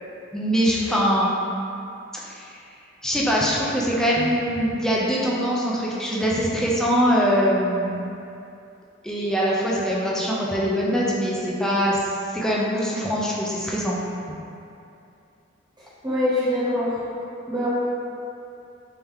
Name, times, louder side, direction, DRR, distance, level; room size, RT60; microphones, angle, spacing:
voice 1, 0.3-1.3 2.1-2.5 3.0-8.1 9.0-12.0 12.3-14.0 14.3-14.4, equal, 5° left, -6 dB, 0.5 m, -23 dB
voice 2, 15.8-17.0 17.5-17.7, left 1 dB, 20° right, -11 dB, 1.2 m, -24 dB
3.5 x 2.8 x 3.5 m, 2.6 s
head